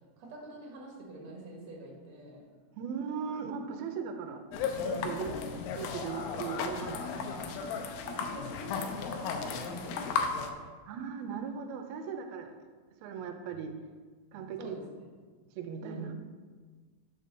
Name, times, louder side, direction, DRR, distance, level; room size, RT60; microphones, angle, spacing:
voice 1, 0.2-2.5 5.4-5.5 6.4-6.7 8.0-10.5 14.6-15.1 15.8-16.2, right 1 dB, 55° right, -1 dB, 2.5 m, -45 dB
voice 2, 2.7-4.5 4.7-5.4 5.8-7.4 10.9-12.6 13.0-13.8 14.3-14.8 15.6-16.1, right 6 dB, 85° right, 7 dB, 2.5 m, -38 dB
sound 1, 4.5-10.5, left 5 dB, 85° left, 2.5 m, -35 dB
6.7 x 5.2 x 6.6 m, 1.5 s
omnidirectional pair, 4.3 m